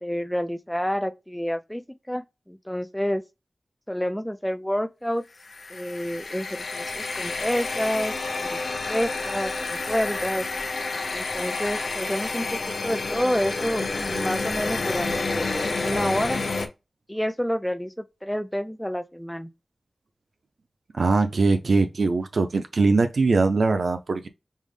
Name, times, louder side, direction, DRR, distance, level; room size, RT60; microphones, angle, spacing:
voice 1, 0.0-3.2 3.9-5.2 5.7-8.6 8.8-10.5 11.1-16.4 17.1-19.5, equal, 5° left, 0.3 m, -29 dB
sound 1, 5.4-16.7, left 3 dB, 85° left, 0.6 m, -29 dB
voice 2, 20.9-24.3, right 3 dB, 85° right, 0.4 m, -21 dB
5.3 x 2.0 x 3.2 m
wide cardioid pair, 95°, 0 cm